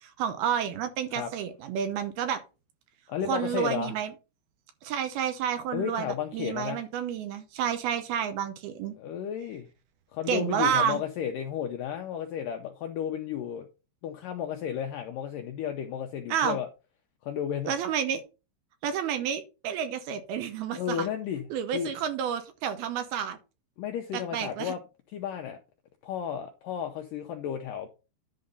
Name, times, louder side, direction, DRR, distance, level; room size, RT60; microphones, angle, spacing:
voice 1, 0.2-2.4 3.2-4.1 4.8-8.9 10.3-11.0 16.3-16.6 17.7-18.2 18.8-21.1 21.5-23.4 24.3-24.7, right 8 dB, 75° right, 2.7 m, -30 dB
voice 2, 3.1-3.9 5.7-6.8 9.0-9.7 10.1-13.7 14.0-16.7 17.2-17.8 20.7-21.5 21.7-21.9 23.8-24.8 25.1-25.6 26.0-27.9, left 9 dB, 80° left, 1.9 m, -33 dB
10.5 x 3.8 x 5.4 m
omnidirectional pair, 4.8 m